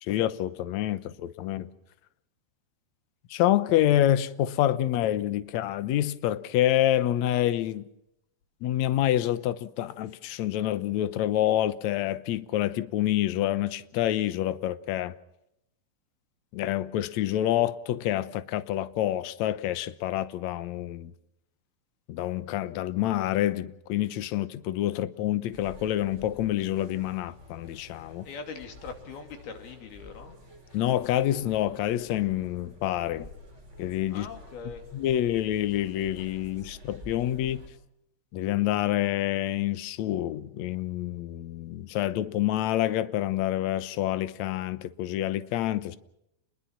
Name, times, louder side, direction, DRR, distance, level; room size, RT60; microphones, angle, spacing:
voice 1, 0.0-1.7 3.3-7.9 8.6-15.1 16.5-21.1 22.1-28.3 30.7-33.3 33.8-34.3 34.9-37.7 38.3-46.0, left 12 dB, 70° left, 1.8 m, -27 dB
sound 1, 25.5-37.7, left 1 dB, 20° right, 5.0 m, -49 dB
voice 2, 28.2-30.4 34.1-34.9, left 5 dB, 85° left, 4.6 m, -41 dB
29.0 x 21.5 x 6.0 m
omnidirectional pair, 4.3 m